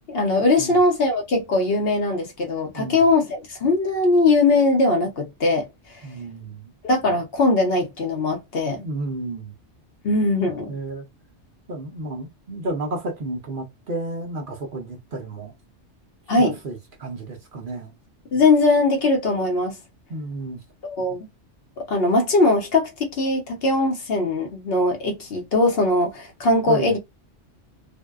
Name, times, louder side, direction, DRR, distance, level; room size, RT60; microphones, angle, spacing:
voice 1, 0.1-6.0 6.8-8.8 10.0-10.7 16.3-16.6 18.3-19.8 20.8-21.3 21.9-27.0, left 2 dB, 60° left, 0.8 m, -20 dB
voice 2, 6.0-6.7 8.8-9.5 10.7-11.1 11.7-15.5 16.4-17.9 20.1-20.6 26.7-26.9, right 2 dB, 55° right, 0.7 m, -32 dB
2.6 x 2.1 x 2.2 m
omnidirectional pair, 1.2 m